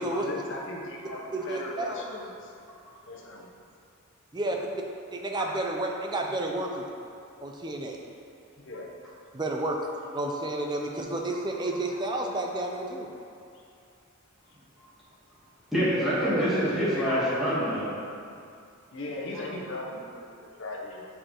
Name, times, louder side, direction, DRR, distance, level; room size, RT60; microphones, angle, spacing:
voice 1, 0.0-2.5 3.1-3.5 8.6-8.9 16.2-16.7 17.0-17.3 18.9-21.0, left 2 dB, 60° left, -1 dB, 0.8 m, -38 dB
voice 2, 1.3-2.0 4.3-4.6 5.1-6.9 7.4-8.0 9.3-13.1, right 1 dB, 20° right, 1 dB, 0.4 m, -31 dB
voice 3, 15.7-17.9 19.3-19.4, equal, ahead, -12 dB, 1.4 m, -26 dB
6.6 x 4.7 x 3.0 m, 2.5 s
head